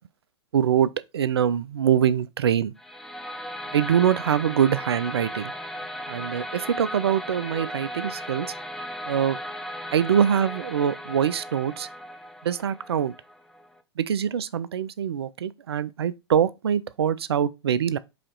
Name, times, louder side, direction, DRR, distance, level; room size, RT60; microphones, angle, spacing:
voice 1, 0.5-2.7 3.7-5.5 6.1-8.5 9.1-9.4 9.9-11.9 12.4-13.1 14.0-18.0, right 9 dB, 65° right, 0.4 m, -24 dB
sound 1, 2.8-13.8, equal, 5° left, 0.6 m, -36 dB
4.9 x 2.8 x 3.8 m
figure-of-eight pair, 100°, 14 cm